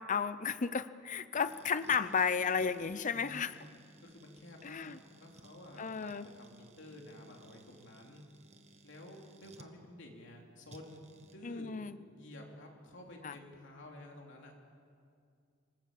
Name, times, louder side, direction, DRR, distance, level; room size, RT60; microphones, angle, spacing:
voice 1, 0.0-3.6 4.6-5.0 5.8-6.3 11.4-12.0 13.2-13.4, left 6 dB, 40° left, 14 dB, 0.6 m, -33 dB
sound 1, 1.3-9.7 10.7-11.4, right 2 dB, 35° right, 1.4 m, -60 dB
voice 2, 3.1-3.6 4.0-8.2 8.8-11.8 12.1-14.5, left 1 dB, 65° left, 1 dB, 3.5 m, -52 dB
27.0 x 19.0 x 7.6 m, 2.3 s
head